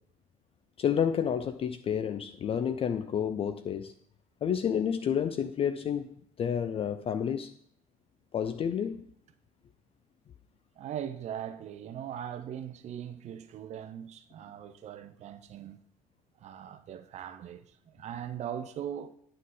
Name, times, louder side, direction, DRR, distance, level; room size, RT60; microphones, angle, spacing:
voice 1, 0.8-3.9 4.4-7.5 8.3-9.1, left 8 dB, 30° left, 0.5 m, -30 dB
voice 2, 10.8-15.8 16.4-19.1, right 9 dB, 40° right, 0.6 m, -40 dB
9.3 x 3.8 x 6.5 m
figure-of-eight pair, 60°, 18 cm